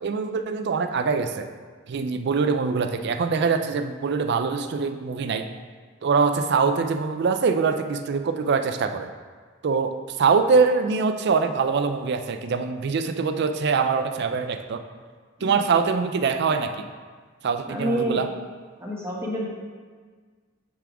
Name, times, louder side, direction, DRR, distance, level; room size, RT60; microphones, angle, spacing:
voice 1, 0.0-1.5 1.9-5.5 6.0-9.1 9.6-14.8 15.4-16.9 17.4-18.3, right 5 dB, 55° right, 8 dB, 0.4 m, -23 dB
voice 2, 17.6-18.2 18.8-19.5, right 1 dB, 15° right, -4 dB, 1.1 m, -28 dB
7.4 x 3.5 x 4.8 m, 1.5 s
head